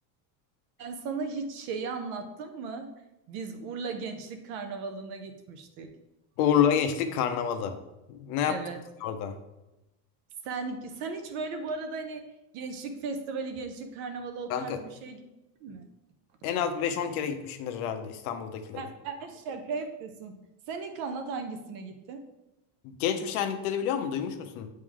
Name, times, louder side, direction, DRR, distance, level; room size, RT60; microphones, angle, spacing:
voice 1, 0.8-2.9 3.3-5.9 8.5-8.8 10.4-12.3 12.5-15.2 15.6-15.9 18.7-20.4 20.7-22.2, right 4 dB, 40° right, 6 dB, 0.4 m, -36 dB
voice 2, 6.4-7.8 8.1-8.6 9.0-9.3 14.5-14.8 16.4-18.8 22.8-24.7, left 8 dB, 65° left, 8 dB, 0.8 m, -28 dB
8.1 x 3.2 x 3.6 m, 0.96 s
cardioid pair, 175°, 47 cm